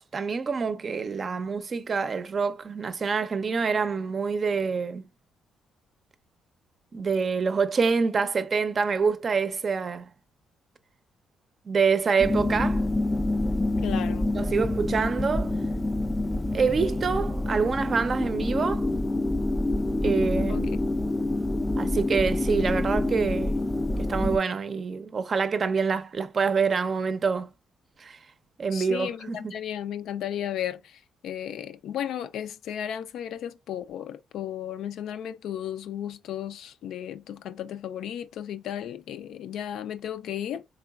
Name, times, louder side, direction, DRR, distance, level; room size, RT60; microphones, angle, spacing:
voice 1, 0.0-5.0 6.9-10.1 11.7-12.8 14.3-15.5 16.5-18.9 20.0-20.7 21.8-23.6 24.1-27.5 28.0-28.2 28.6-29.6, right 5 dB, 40° right, 0.5 m, -26 dB
sound 1, 12.2-24.4, left 2 dB, 15° left, 0.4 m, -27 dB
voice 2, 13.8-14.3 20.5-20.8 28.7-40.6, left 10 dB, 75° left, 0.4 m, -34 dB
3.8 x 3.4 x 2.3 m
cardioid pair, 90°, 0 cm